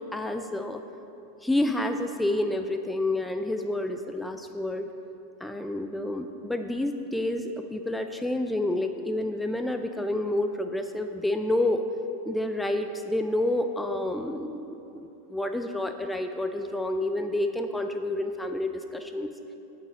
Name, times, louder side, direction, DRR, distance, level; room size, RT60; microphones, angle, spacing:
voice 1, 0.1-0.8 1.4-4.9 5.4-11.8 12.3-19.3, left 1 dB, 5° left, 6 dB, 0.3 m, -29 dB
9.6 x 5.5 x 3.9 m, 2.9 s
figure-of-eight pair, 90°, 0 cm